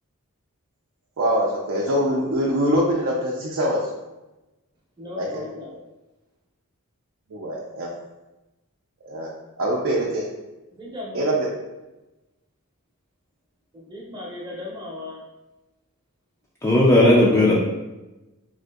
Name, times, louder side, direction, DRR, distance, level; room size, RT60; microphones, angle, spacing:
voice 1, 1.2-3.9 5.2-5.4 7.3-7.9 9.0-10.3 11.1-11.5, equal, 65° right, -3 dB, 0.5 m, -23 dB
voice 2, 5.0-5.7 10.7-11.3 13.7-15.2, left 2 dB, 20° right, -4 dB, 0.6 m, -36 dB
voice 3, 16.6-17.5, left 1 dB, 10° left, -5 dB, 0.3 m, -15 dB
3.7 x 2.5 x 2.3 m, 1.0 s
head